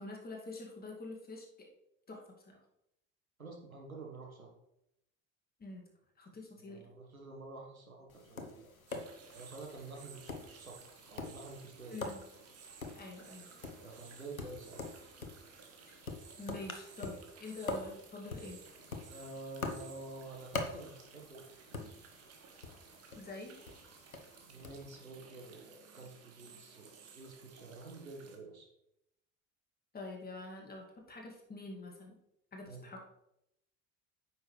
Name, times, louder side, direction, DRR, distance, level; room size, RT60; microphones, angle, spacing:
voice 1, 0.0-1.7 2.1-2.6 5.6-5.8 6.2-6.9 11.9-12.2 12.9-13.5 16.4-18.6 23.2-23.6 29.9-32.2 32.5-33.1, left 2 dB, 20° left, 0 dB, 2.2 m, -46 dB
voice 2, 3.4-4.5 6.6-8.7 9.3-12.0 13.8-14.8 19.1-21.9 24.5-28.7 32.6-32.9, right 2 dB, 90° right, 1 dB, 1.4 m, -49 dB
Tap, 8.1-24.8, left 3 dB, 90° left, 0.8 m, -46 dB
sound 1, 8.9-28.4, right 6 dB, 35° right, 1.6 m, -57 dB
9.5 x 6.4 x 3.2 m, 0.82 s
figure-of-eight pair, 65°, 41 cm